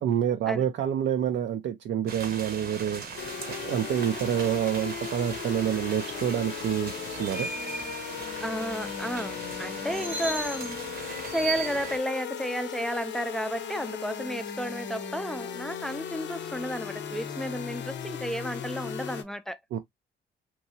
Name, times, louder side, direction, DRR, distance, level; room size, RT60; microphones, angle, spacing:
voice 1, 0.0-3.0 3.6-7.5 19.7-19.8, right 9 dB, 65° right, 0.5 m, -27 dB
sound 1, 2.1-12.0, right 4 dB, 50° right, 0.9 m, -38 dB
sound 2, 3.2-19.2, left 8 dB, 65° left, 0.6 m, -37 dB
voice 2, 8.4-10.8 11.3-19.6, equal, ahead, 0.4 m, -32 dB
3.0 x 2.6 x 2.6 m
cardioid pair, 90°, 20 cm